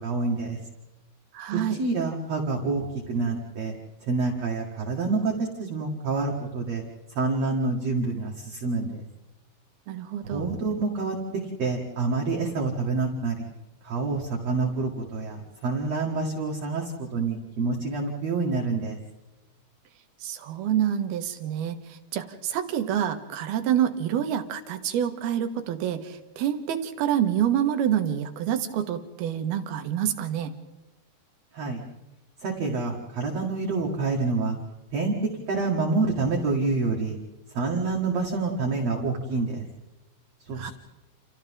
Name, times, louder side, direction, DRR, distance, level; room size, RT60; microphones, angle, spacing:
voice 1, 0.0-0.6 1.5-3.7 4.1-6.8 7.1-9.1 10.2-13.5 13.8-19.0 31.5-31.8 32.4-34.6 34.9-37.2 37.5-39.7 40.5-40.7, right 3 dB, 50° right, -1 dB, 2.8 m, -27 dB
voice 2, 1.3-1.8 9.9-10.5 20.2-30.5 40.6-40.7, right 10 dB, 90° right, 8 dB, 3.3 m, -27 dB
29.5 x 28.0 x 3.7 m, 1.0 s
omnidirectional pair, 4.4 m